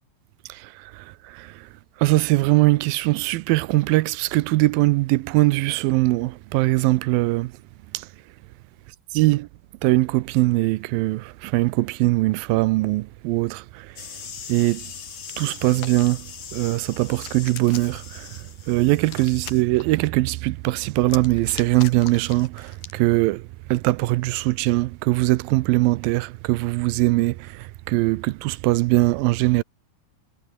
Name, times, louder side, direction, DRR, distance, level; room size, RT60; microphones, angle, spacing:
voice 1, 0.5-1.5 2.0-7.5 7.9-8.1 9.1-9.5 9.8-13.9 14.5-14.8 15.4-16.3 16.5-18.3 18.7-23.4 23.7-29.6, right 19 dB, 85° right, 2.4 m, -21 dB
sound 1, 14.0-19.6, left 7 dB, 40° left, 2.0 m, -40 dB
Hands, 15.6-16.1 16.8-18.1 19.0-19.8 21.0-23.0, left 10 dB, 65° left, 3.6 m, -40 dB
omnidirectional pair, 4.2 m